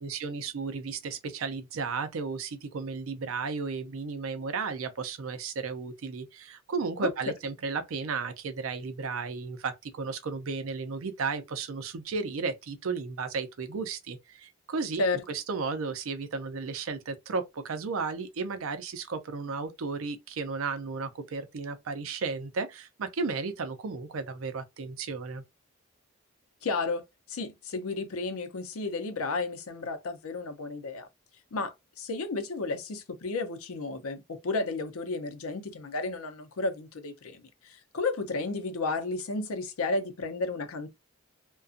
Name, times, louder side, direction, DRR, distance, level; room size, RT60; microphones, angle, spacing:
voice 1, 0.0-25.4, right 4 dB, 75° right, 0.5 m, -34 dB
voice 2, 26.6-27.0 27.3-31.1 31.5-40.9, left 3 dB, 90° left, 0.6 m, -32 dB
2.5 x 2.2 x 2.5 m
head